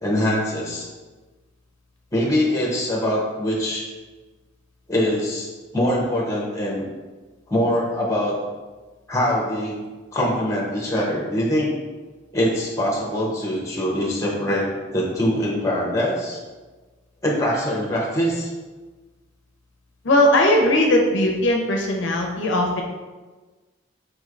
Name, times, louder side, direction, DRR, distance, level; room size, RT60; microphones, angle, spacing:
voice 1, 0.0-0.9 2.1-3.9 4.9-6.8 7.5-8.4 9.1-9.7 10.1-11.7 12.3-16.4 17.2-18.5, equal, 15° left, -3 dB, 0.7 m, -23 dB
voice 2, 20.0-22.8, left 1 dB, 65° left, 1 dB, 0.5 m, -18 dB
4.5 x 3.1 x 2.4 m, 1.3 s
head